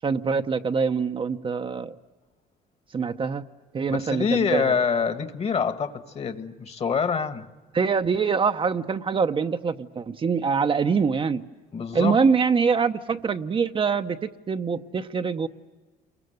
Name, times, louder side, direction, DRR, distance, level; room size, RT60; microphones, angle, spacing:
voice 1, 0.0-1.9 2.9-3.4 3.7-4.8 7.7-11.5 11.9-15.5, right 5 dB, 30° right, 7 dB, 0.8 m, -24 dB
voice 2, 3.9-7.5 11.7-12.2, left 6 dB, 40° left, 10 dB, 1.7 m, -26 dB
28.5 x 23.0 x 8.0 m, 1.2 s
cardioid pair, 110°, 17 cm